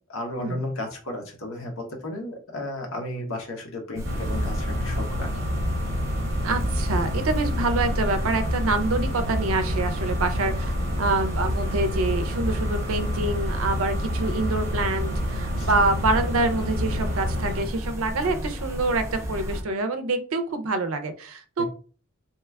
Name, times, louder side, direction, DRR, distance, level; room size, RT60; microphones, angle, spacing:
voice 1, 0.1-5.3 15.6-15.7 21.6-21.7, left 1 dB, 75° left, 2 dB, 0.9 m, -33 dB
sound 1, 3.9-19.6, equal, 15° right, 0.6 m, -33 dB
sound 2, 4.0-17.6, equal, 60° right, 0.9 m, -28 dB
voice 2, 6.4-21.6, right 2 dB, 80° right, 9 dB, 0.5 m, -26 dB
2.9 x 2.3 x 3.3 m, 0.39 s
head